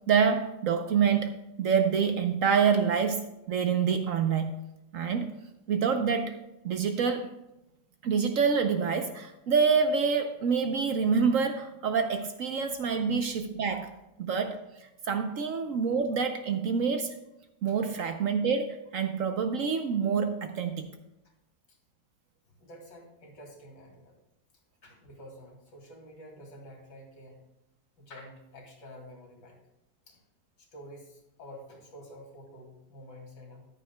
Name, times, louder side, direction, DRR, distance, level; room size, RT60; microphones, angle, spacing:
voice 1, 0.1-1.3 1.6-4.5 4.9-5.3 5.7-6.4 6.6-7.3 8.0-13.9 14.2-17.1 17.6-20.9, right 6 dB, 60° right, 7 dB, 0.9 m, -27 dB
voice 2, 22.5-24.1 24.8-27.5 28.0-29.6 30.1-30.2 30.6-33.7, equal, 90° left, 0 dB, 3.0 m, -49 dB
14.0 x 10.0 x 2.2 m, 0.91 s
omnidirectional pair, 1.9 m